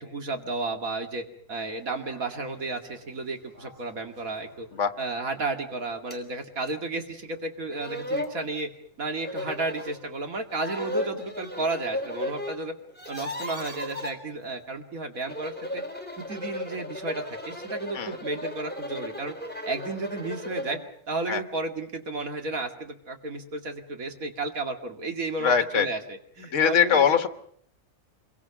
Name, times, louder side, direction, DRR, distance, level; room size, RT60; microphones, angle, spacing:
voice 1, 0.0-4.7 5.0-8.7 9.0-12.7 13.1-15.8 16.3-19.3 19.6-20.8 21.1-27.2, right 2 dB, 80° right, 5 dB, 2.7 m, -33 dB
sound 1, 1.5-5.4, right 1 dB, 50° right, 6.1 m, -54 dB
sound 2, 6.1-6.2 6.7-6.8 7.4-7.5 7.7-8.4 9.2-10.0 10.5-12.6 12.8-14.1 15.1-20.9, left 1 dB, 5° left, 3.3 m, -35 dB
voice 2, 25.4-25.9 26.5-27.3, left 7 dB, 60° left, 9 dB, 1.5 m, -21 dB
26.5 x 22.5 x 6.0 m, 0.65 s
omnidirectional pair, 1.4 m